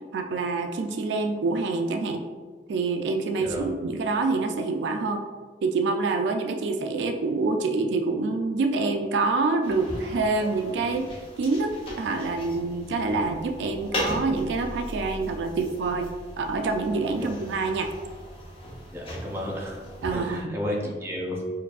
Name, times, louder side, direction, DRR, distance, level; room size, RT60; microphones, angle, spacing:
voice 1, 0.1-2.2 2.7-5.2 5.6-11.1 11.4-16.1 16.4-17.9 20.0-20.6, right 3 dB, 75° right, 6 dB, 0.3 m, -26 dB
sound 1, 9.6-20.4, equal, 30° left, 0.7 m, -38 dB
voice 2, 18.9-21.4, left 1 dB, 15° right, -2 dB, 0.5 m, -32 dB
4.5 x 2.6 x 2.4 m, 1.5 s
head